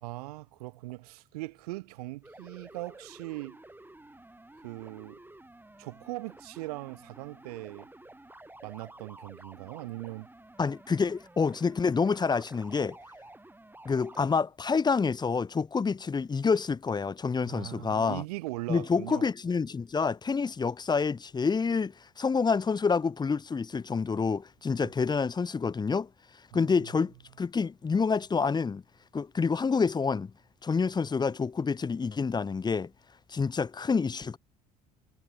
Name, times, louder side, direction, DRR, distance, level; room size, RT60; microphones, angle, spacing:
voice 1, 0.0-3.6 4.6-5.2 5.8-7.9 8.6-10.3 17.4-19.3 24.8-24.9 26.5-26.7, right 21 dB, 90° right, 0.7 m, -40 dB
sound 1, 2.2-14.3, right 1 dB, 10° right, 5.5 m, -52 dB
voice 2, 10.6-13.0 13.8-18.2 18.7-26.1 26.5-28.8 29.1-30.3 30.6-32.9 33.3-34.4, left 5 dB, 20° left, 0.6 m, -28 dB
hypercardioid pair, 65°, 19 cm